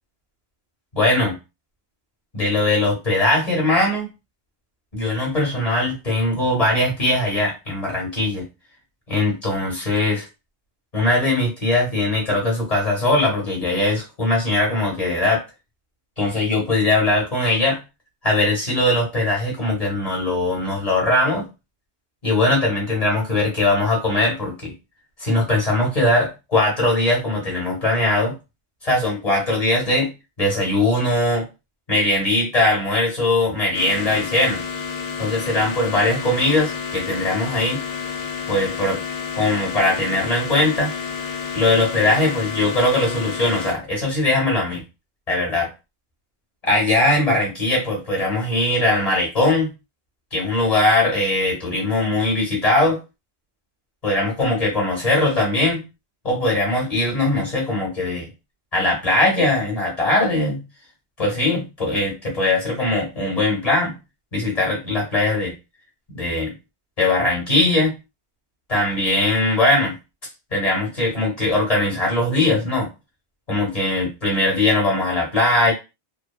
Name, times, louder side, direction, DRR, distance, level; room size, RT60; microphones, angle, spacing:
voice 1, 0.9-1.4 2.3-4.1 4.9-8.4 9.1-10.3 10.9-15.4 16.2-17.8 18.2-21.5 22.2-24.7 25.2-28.3 28.8-30.1 30.4-31.5 31.9-34.6 35.2-37.8 38.5-39.0 39.3-40.9 41.5-44.8 45.3-45.7 46.6-49.7 50.3-53.0 54.0-55.8 56.2-58.3 58.7-60.6 61.2-63.9 64.3-65.5 66.1-66.5 67.0-68.0 68.7-69.9 70.5-72.9 73.5-75.7, left 2 dB, 35° left, -2 dB, 1.0 m, -20 dB
sound 1, 33.7-43.7, left 6 dB, 80° left, 1.0 m, -30 dB
2.9 x 2.2 x 2.3 m, 0.26 s
omnidirectional pair, 1.2 m